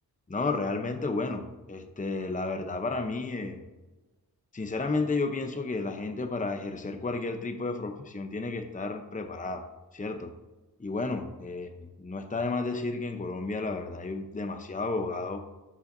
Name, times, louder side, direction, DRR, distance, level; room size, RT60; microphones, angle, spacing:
voice 1, 0.3-3.6 4.5-9.6 9.9-10.3 10.8-11.7 12.0-15.4, left 3 dB, 20° left, 6 dB, 0.8 m, -32 dB
12.5 x 5.6 x 2.7 m, 1.2 s
cardioid pair, 55°, 39 cm